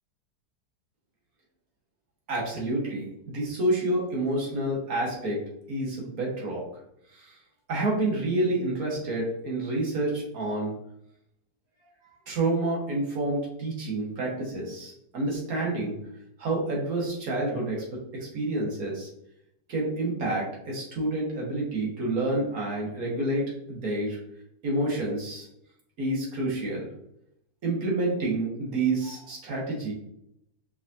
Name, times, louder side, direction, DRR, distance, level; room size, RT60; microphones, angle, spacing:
voice 1, 2.3-5.4 5.7-6.7 7.1-7.4 7.7-10.7 12.3-16.0 16.4-17.8 18.1-19.1 19.7-24.2 24.6-25.5 26.0-26.9 27.6-29.9, right 2 dB, 60° right, -3 dB, 1.6 m, -28 dB
4.8 x 3.6 x 2.6 m, 0.76 s
omnidirectional pair, 1.9 m